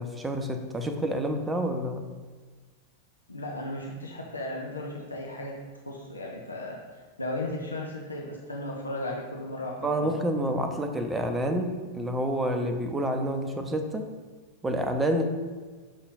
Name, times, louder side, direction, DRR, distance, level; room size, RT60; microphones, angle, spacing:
voice 1, 0.0-2.0 9.8-14.1 14.6-15.2, right 1 dB, 10° right, 6 dB, 0.6 m, -28 dB
voice 2, 3.3-5.5 5.9-10.1, left 1 dB, 80° left, -2 dB, 0.7 m, -35 dB
6.4 x 4.0 x 3.9 m, 1.4 s
figure-of-eight pair, 90°, 0 cm